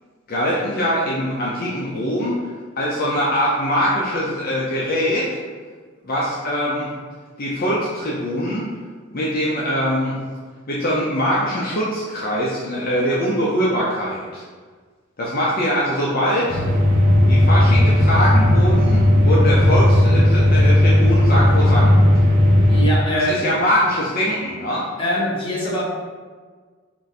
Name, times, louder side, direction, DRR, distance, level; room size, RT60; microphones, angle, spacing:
voice 1, 0.3-5.4 6.0-6.9 7.4-8.7 9.1-10.1 10.7-14.4 15.2-16.6 17.3-22.0 23.3-24.9, equal, 45° left, -6 dB, 0.6 m, -22 dB
sound 1, 16.5-22.8, left 1 dB, 40° right, 0.7 m, -15 dB
voice 2, 22.7-23.4 25.0-25.8, equal, 25° left, -5 dB, 1.0 m, -22 dB
4.5 x 2.7 x 4.1 m, 1.5 s
head